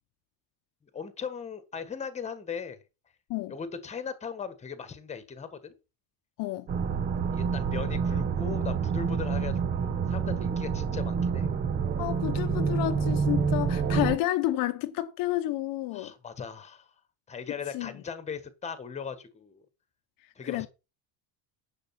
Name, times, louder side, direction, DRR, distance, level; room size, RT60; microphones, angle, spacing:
voice 1, 0.9-2.8 3.5-5.8 7.3-11.5 15.9-16.9 17.3-19.6 20.3-20.7, left 6 dB, 15° left, 1.5 m, -38 dB
sound 1, 6.7-14.2, right 6 dB, 20° right, 0.7 m, -28 dB
voice 2, 12.0-16.1 17.7-17.9 20.4-20.7, left 15 dB, 50° left, 1.0 m, -30 dB
10.5 x 6.9 x 5.9 m
cardioid pair, 180°, 44 cm